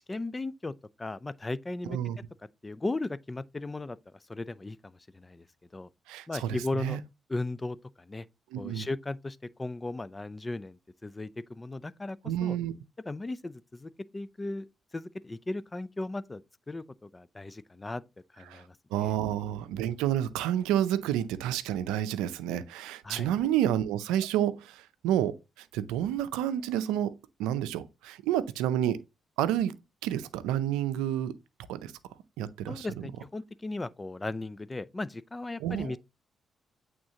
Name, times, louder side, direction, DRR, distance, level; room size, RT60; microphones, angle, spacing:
voice 1, 0.0-2.0 2.6-5.5 5.7-5.9 6.3-7.0 7.3-8.3 8.6-12.6 13.1-14.7 14.9-16.4 16.7-18.0 18.3-19.1 23.0-23.3 32.7-36.0, left 2 dB, 25° left, 0.5 m, -36 dB
voice 2, 6.1-6.5 6.8-7.0 8.5-8.9 12.2-12.7 18.5-18.6 18.9-29.0 29.4-29.8 30.0-31.3 31.7-31.9 32.4-33.1 35.6-36.0, right 11 dB, 85° right, 0.5 m, -30 dB
8.6 x 3.8 x 2.8 m
hypercardioid pair, 50°, 0 cm